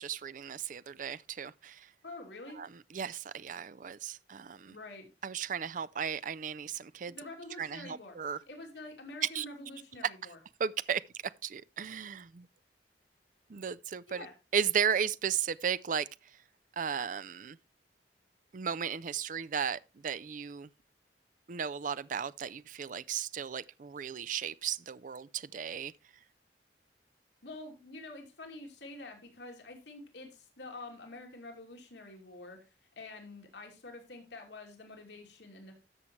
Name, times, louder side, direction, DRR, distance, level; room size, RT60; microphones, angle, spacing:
voice 1, 0.0-1.9 2.6-4.8 5.2-7.2 7.6-8.4 9.3-9.5 10.6-11.0 11.4-12.5 13.5-14.3 14.5-16.1 16.8-17.6 18.5-20.7 21.5-25.9, right 7 dB, 50° right, 0.4 m, -35 dB
voice 2, 2.0-2.6 4.7-5.1 7.1-8.2 8.5-10.4 14.1-14.3 27.4-35.7, left 2 dB, 85° left, 2.8 m, -47 dB
13.5 x 7.2 x 3.1 m
head